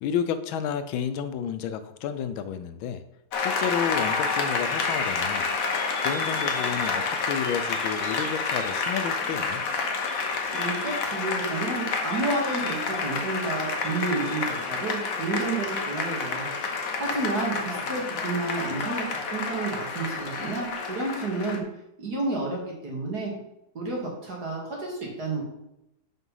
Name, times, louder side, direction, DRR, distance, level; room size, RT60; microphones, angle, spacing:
voice 1, 0.0-3.0 3.4-5.5 6.0-9.6, left 8 dB, 90° left, 11 dB, 1.5 m, -31 dB
Applause, 3.3-21.6, left 4 dB, 55° left, 1.2 m, -29 dB
voice 2, 10.5-16.5 17.0-21.6 22.0-23.3 23.7-25.4, right 3 dB, 55° right, -2 dB, 2.5 m, -30 dB
6.0 x 5.5 x 5.4 m, 0.84 s
omnidirectional pair, 2.1 m